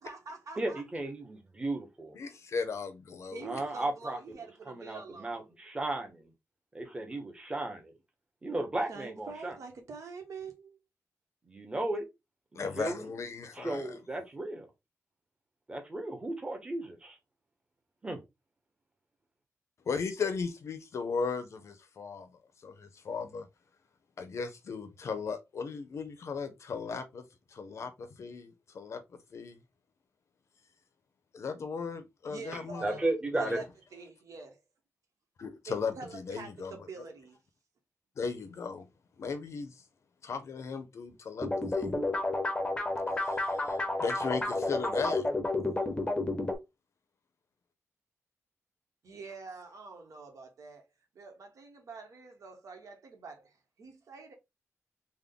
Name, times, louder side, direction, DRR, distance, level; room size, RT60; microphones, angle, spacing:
voice 1, 0.0-0.8 3.3-5.5 8.9-10.8 32.3-33.1 33.4-33.6 33.9-34.6 35.7-37.4 49.0-50.8 51.1-54.3, right 4 dB, 75° right, 1.1 m, -46 dB
voice 2, 0.6-2.2 3.4-4.2 4.7-6.3 6.7-7.9 8.4-9.6 11.4-12.1 12.5-13.1 13.5-14.7 15.7-17.2 18.0-18.2 32.8-33.6, right 2 dB, 20° right, 0.9 m, -35 dB
voice 3, 2.2-3.6 12.5-13.9 19.9-23.5 24.2-27.2 27.5-29.0 29.3-29.6 31.3-32.9 35.4-36.8 38.2-38.9 39.2-39.8 40.2-41.9 43.2-45.2, left 5 dB, 60° left, 0.6 m, -37 dB
sound 1, 41.4-46.5, left 2 dB, 20° left, 0.6 m, -31 dB
3.6 x 2.1 x 3.7 m
wide cardioid pair, 165°, 5 cm